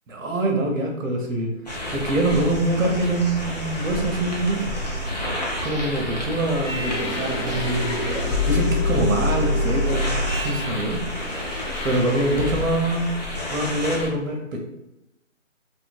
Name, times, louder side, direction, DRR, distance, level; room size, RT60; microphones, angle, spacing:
voice 1, 0.1-1.5 1.9-4.6 5.6-8.0 8.5-10.1 10.4-11.0 11.8-13.1 13.5-14.6, right 1 dB, 90° right, 1 dB, 0.7 m, -24 dB
sound 1, 1.7-14.1, equal, 35° left, 0.5 m, -30 dB
sound 2, 6.5-13.0, left 2 dB, 75° left, 0.9 m, -27 dB
2.6 x 2.5 x 2.4 m, 0.91 s
figure-of-eight pair, 160°, 38 cm